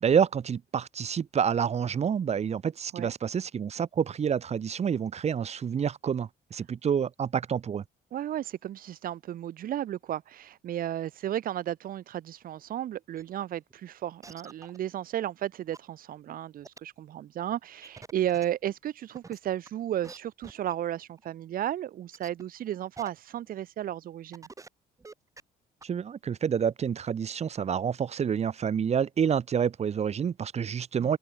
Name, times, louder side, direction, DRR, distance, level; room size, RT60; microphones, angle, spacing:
voice 1, 0.0-7.8 25.8-31.2, right 7 dB, 40° right, 1.8 m, -28 dB
voice 2, 8.1-24.5 31.0-31.2, right 11 dB, 55° right, 1.4 m, -34 dB
sound 1, 13.2-13.3 13.7-13.8 14.2-14.8 15.4-15.5 15.7-15.8 16.6-16.8 17.8-18.5 19.1-19.7 20.0-20.2 20.4-20.7 21.2-21.3 22.1-22.4 23.0-23.1 23.5-23.6 24.0-24.1 24.3-24.7 25.0-25.4 25.8-25.9, right 3 dB, 20° right, 4.7 m, -46 dB
cardioid pair, 110°, 17 cm